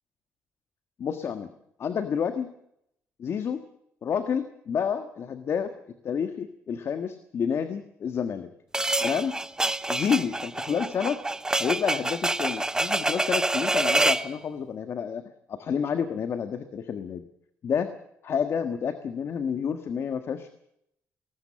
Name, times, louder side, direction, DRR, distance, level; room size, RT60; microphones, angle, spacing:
voice 1, 1.0-1.5 1.8-2.5 3.2-3.6 4.0-5.7 6.0-8.5 9.0-9.3 9.9-11.2 11.6-15.2 15.5-17.2 17.6-17.9 18.2-20.5, left 7 dB, 50° left, 9 dB, 1.4 m, -29 dB
sound 1, 8.7-14.3, right 2 dB, 10° right, 0.8 m, -26 dB
19.5 x 19.0 x 7.7 m, 0.77 s
cardioid pair, 105°, 5 cm